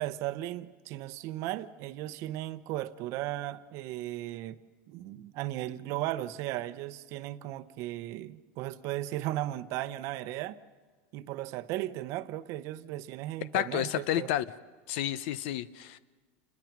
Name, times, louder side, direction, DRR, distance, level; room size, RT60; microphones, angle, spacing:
voice 1, 0.0-4.6 4.9-10.6 11.1-14.3, right 15 dB, 45° right, 0.9 m, -36 dB
voice 2, 13.5-14.4 14.9-16.0, left 12 dB, 60° left, 0.6 m, -30 dB
29.0 x 21.5 x 6.1 m
supercardioid pair, 150°, 7 cm